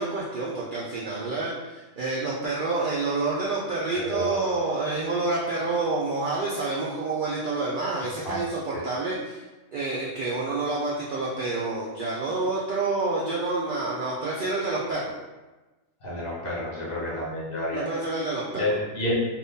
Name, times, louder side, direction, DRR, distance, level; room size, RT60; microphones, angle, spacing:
voice 1, 0.0-9.4 9.7-15.1 17.7-18.8, right 3 dB, 85° right, -5 dB, 0.4 m, -28 dB
voice 2, 4.0-4.5 8.2-8.4 16.0-17.9 18.6-19.1, left 1 dB, 45° left, -5 dB, 0.9 m, -29 dB
2.6 x 2.5 x 3.5 m, 1.1 s
omnidirectional pair, 1.4 m